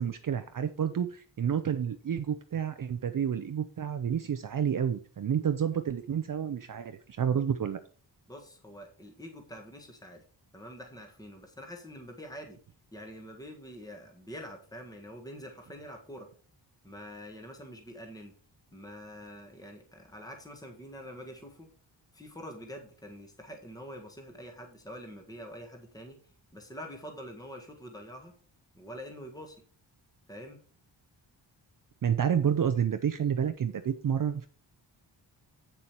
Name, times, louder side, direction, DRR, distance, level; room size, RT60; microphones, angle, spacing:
voice 1, 0.0-7.8 32.0-34.5, right 8 dB, 45° right, 9 dB, 0.6 m, -29 dB
voice 2, 8.3-10.2 10.5-12.6 12.9-16.3 16.8-18.3 18.7-21.7 22.1-26.2 26.5-28.3 28.7-29.6 30.3-30.6, equal, 10° left, 3 dB, 1.6 m, -45 dB
8.4 x 7.1 x 4.5 m, 0.40 s
wide cardioid pair, 145°, 44 cm